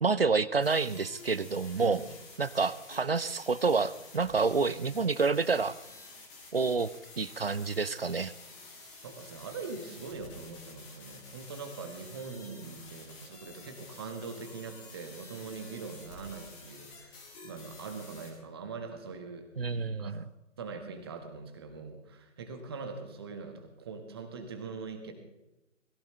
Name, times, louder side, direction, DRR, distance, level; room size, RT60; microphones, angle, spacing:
voice 1, 0.0-2.0 2.4-5.8 6.5-8.3 19.6-20.2, right 4 dB, 50° right, 18 dB, 0.7 m, -28 dB
sound 1, 0.6-18.3, left 3 dB, 10° left, 2.4 m, -50 dB
voice 2, 8.7-19.5 19.8-20.3 20.6-25.1, right 4 dB, 20° right, 6 dB, 1.5 m, -42 dB
21.0 x 15.5 x 3.3 m, 0.94 s
figure-of-eight pair, 150°, 39 cm